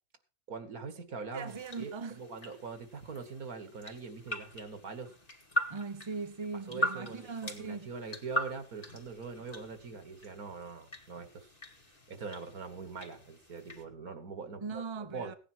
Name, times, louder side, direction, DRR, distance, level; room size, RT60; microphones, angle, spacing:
voice 1, 0.5-5.1 6.7-11.5 12.1-15.3, right 4 dB, 80° right, 2.2 m, -43 dB
voice 2, 1.2-2.2 5.7-7.9 14.6-15.3, right 4 dB, 25° right, 0.9 m, -40 dB
sound 1, 1.5-13.8, equal, 25° left, 2.1 m, -41 dB
17.0 x 10.0 x 4.6 m
omnidirectional pair, 1.5 m